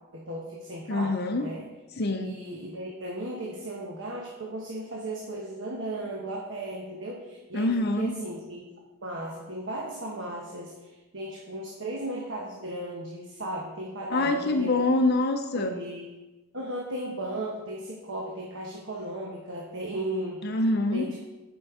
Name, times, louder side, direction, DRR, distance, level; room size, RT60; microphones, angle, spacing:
voice 1, 0.1-1.6 2.2-7.7 8.0-8.6 9.0-14.9 15.5-16.1 16.5-20.4 20.9-21.2, right 1 dB, 55° right, -2 dB, 1.1 m, -36 dB
voice 2, 0.9-1.5 2.0-2.4 7.5-8.1 14.1-15.8 20.4-21.1, left 2 dB, 50° left, 6 dB, 0.6 m, -25 dB
8.7 x 5.3 x 4.9 m, 1.1 s
head